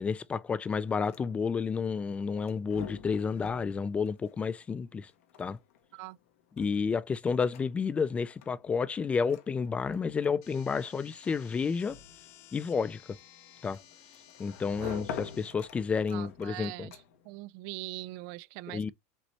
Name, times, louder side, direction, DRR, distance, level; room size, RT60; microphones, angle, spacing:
voice 1, 0.0-5.1 5.4-5.6 6.6-12.0 12.5-13.2 13.6-13.8 14.4-16.9 18.7-18.9, left 5 dB, 15° left, 0.4 m, -31 dB
sound 1, 0.8-17.4, left 7 dB, 85° left, 1.3 m, -48 dB
sound 2, 10.4-15.5, left 11 dB, 55° left, 1.1 m, -56 dB
voice 2, 16.1-17.0 17.2-18.9, right 19 dB, 55° right, 0.3 m, -42 dB
5.3 x 3.1 x 2.9 m
supercardioid pair, 135°, 7 cm